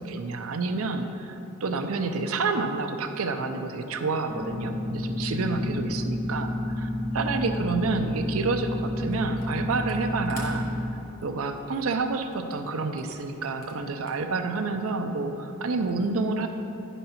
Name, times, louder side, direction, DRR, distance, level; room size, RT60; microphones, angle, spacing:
voice 1, 0.0-6.5 6.8-6.9 7.1-10.7 11.2-16.5, right 3 dB, 70° right, 7 dB, 0.5 m, -29 dB
sound 1, 4.3-10.9, left 1 dB, 15° left, 0.5 m, -30 dB
Camera, 9.1-9.5 9.8-14.4, left 3 dB, 40° left, 1.4 m, -49 dB
10.0 x 4.1 x 5.7 m, 2.8 s
head